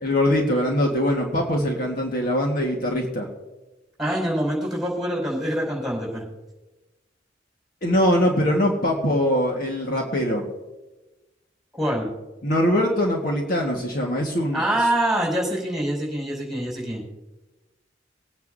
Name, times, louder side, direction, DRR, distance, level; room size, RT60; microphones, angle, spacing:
voice 1, 0.0-3.3 7.8-10.4 12.4-14.6, equal, 50° left, 0 dB, 1.5 m, -22 dB
voice 2, 4.0-6.2 11.7-12.1 14.5-17.0, right 1 dB, ahead, -3 dB, 4.9 m, -25 dB
23.5 x 9.3 x 2.7 m, 1.1 s
head